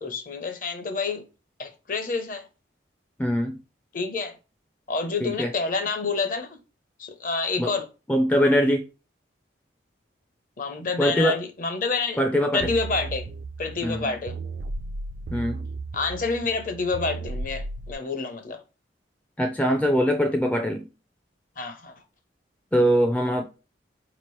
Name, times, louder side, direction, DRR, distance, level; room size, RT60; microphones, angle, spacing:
voice 1, 0.0-1.2 1.6-2.5 3.9-4.3 4.9-6.6 7.0-7.9 10.6-12.2 12.5-13.3 13.6-14.3 15.9-18.6 21.6-21.9, left 4 dB, 45° left, 0.7 m, -28 dB
voice 2, 3.2-3.6 5.2-5.5 7.6-7.7 8.1-8.8 11.0-11.4 12.2-12.7 13.8-14.1 15.3-15.6 19.4-20.8 22.7-23.4, equal, 10° left, 0.3 m, -22 dB
sound 1, 12.6-17.9, right 3 dB, 65° right, 0.4 m, -35 dB
4.6 x 2.9 x 3.1 m
head